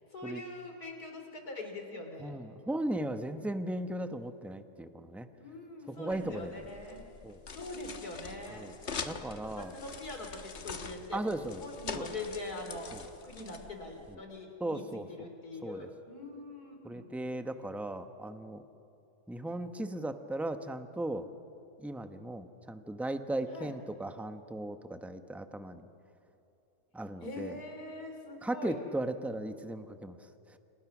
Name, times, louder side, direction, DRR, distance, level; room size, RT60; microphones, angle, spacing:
voice 1, 0.0-2.4 5.4-7.0 7.5-8.7 9.4-11.2 11.6-12.9 13.2-17.1 23.5-23.8 27.2-28.8, left 2 dB, 70° left, 4 dB, 4.0 m, -43 dB
voice 2, 2.2-5.3 5.9-6.5 7.2-7.4 8.5-8.7 9.0-9.7 11.1-11.6 11.9-12.1 12.9-13.0 14.6-15.1 15.6-15.9 16.8-18.6 19.3-21.3 21.8-25.9 26.9-27.6 28.4-30.2, right 1 dB, ahead, 8 dB, 0.7 m, -37 dB
sound 1, 6.1-14.2, left 5 dB, 45° left, 1.4 m, -44 dB
29.5 x 28.0 x 6.1 m, 2.9 s
omnidirectional pair, 1.7 m